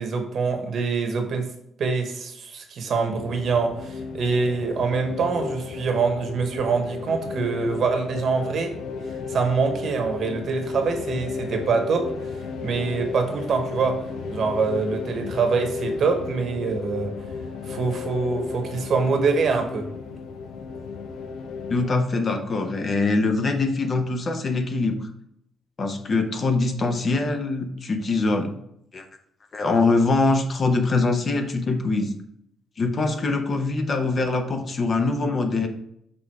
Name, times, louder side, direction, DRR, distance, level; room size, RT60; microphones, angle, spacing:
voice 1, 0.0-1.5 1.8-8.7 9.3-12.1 12.6-14.0 14.3-17.1 17.7-19.9, right 4 dB, 55° right, 4 dB, 1.1 m, -24 dB
sound 1, 3.1-21.9, left 4 dB, 80° left, 0.6 m, -34 dB
voice 2, 21.7-25.1 25.8-28.5 28.9-29.0 29.5-32.1 32.8-35.7, left 3 dB, 35° left, 6 dB, 0.7 m, -23 dB
6.1 x 3.5 x 4.6 m, 0.75 s
cardioid pair, 125°, 0 cm